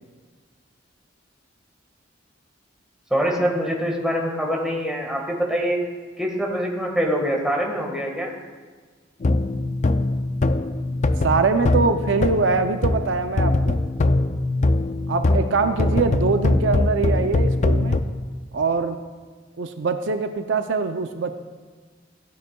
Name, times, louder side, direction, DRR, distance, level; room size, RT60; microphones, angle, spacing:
voice 1, 3.1-5.8 6.2-8.3, equal, 5° right, -1 dB, 1.5 m, -24 dB
sound 1, 9.2-13.1 13.4-18.0, left 2 dB, 40° left, 0.4 m, -22 dB
voice 2, 11.2-13.8 15.1-18.0 18.5-19.0 19.6-21.3, right 4 dB, 70° right, 8 dB, 0.5 m, -23 dB
15.5 x 9.2 x 2.3 m, 1.5 s
head